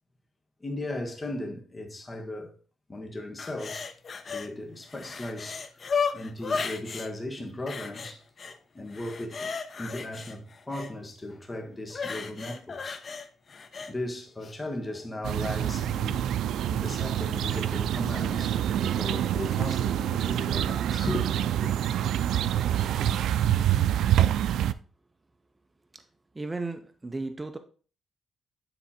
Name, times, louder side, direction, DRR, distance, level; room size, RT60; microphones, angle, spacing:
voice 1, 0.6-2.6 2.9-3.9 4.2-5.7 6.1-9.5 9.8-13.0 13.9-16.3 16.7-21.7, left 1 dB, 20° left, 1.6 m, -37 dB
sound 1, 3.4-4.5 4.8-7.1 7.7-8.6 8.9-10.9 11.9-13.9 14.4-14.6, left 5 dB, 40° left, 0.8 m, -34 dB
sound 2, 15.2-24.7, right 11 dB, 90° right, 0.3 m, -26 dB
voice 2, 26.3-27.6, right 3 dB, 15° right, 0.7 m, -35 dB
10.0 x 3.5 x 4.3 m
cardioid pair, 120°, 0 cm